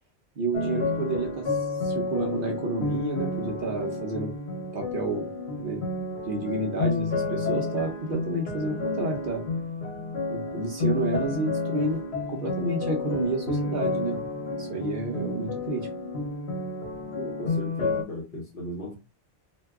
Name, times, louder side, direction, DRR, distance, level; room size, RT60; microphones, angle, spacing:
voice 1, 0.4-4.3 4.7-5.3 5.6-5.8 6.2-9.4 10.3-12.0 12.3-14.2 14.6-15.9, right 2 dB, 60° right, 0.8 m, -30 dB
sound 1, 0.5-18.0, left 3 dB, 80° left, 1.1 m, -31 dB
voice 2, 17.1-19.0, left 1 dB, 60° left, 0.9 m, -37 dB
2.6 x 2.2 x 3.4 m
omnidirectional pair, 1.1 m